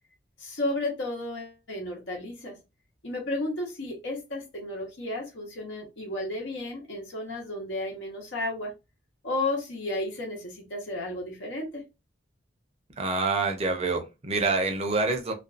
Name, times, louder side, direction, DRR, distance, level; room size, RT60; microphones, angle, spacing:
voice 1, 0.4-2.6 3.0-8.7 9.2-11.8, left 2 dB, 70° left, 0.9 m, -33 dB
voice 2, 13.0-15.3, right 3 dB, 35° right, 0.6 m, -26 dB
2.5 x 2.3 x 2.4 m
head